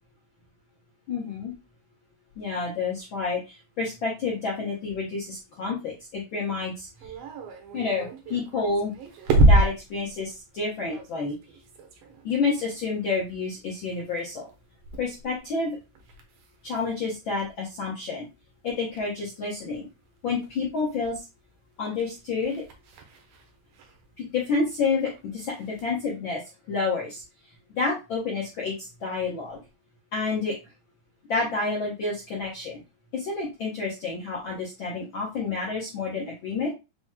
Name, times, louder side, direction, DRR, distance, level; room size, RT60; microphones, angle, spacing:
voice 1, 1.1-1.5 2.4-7.1 7.7-8.9 9.5-11.4 12.2-14.5 15.0-15.8 16.6-18.3 18.6-19.8 20.2-21.2 21.8-22.6 24.2-26.4 26.7-27.2 27.8-29.6 30.1-30.5 31.3-32.8 33.1-36.7, left 4 dB, 75° left, -4 dB, 1.1 m, -29 dB
sound 1, 6.7-17.8 18.3-21.0 21.3-26.0, right 1 dB, 75° right, 1.5 m, -29 dB
5.9 x 2.0 x 3.6 m, 0.26 s
omnidirectional pair, 3.6 m